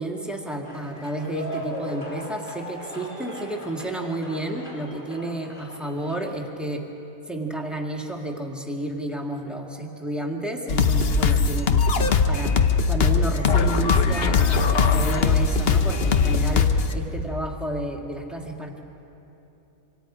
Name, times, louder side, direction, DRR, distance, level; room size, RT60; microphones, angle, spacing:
voice 1, 0.0-6.8 7.3-11.8 12.3-12.6 12.9-18.8, right 1 dB, ahead, 1 dB, 1.8 m, -31 dB
sound 1, 0.6-6.4, equal, 30° left, 3.1 m, -38 dB
sound 2, 10.7-16.9, left 5 dB, 45° left, 0.9 m, -20 dB
26.0 x 25.5 x 5.1 m, 3.0 s
omnidirectional pair, 1.7 m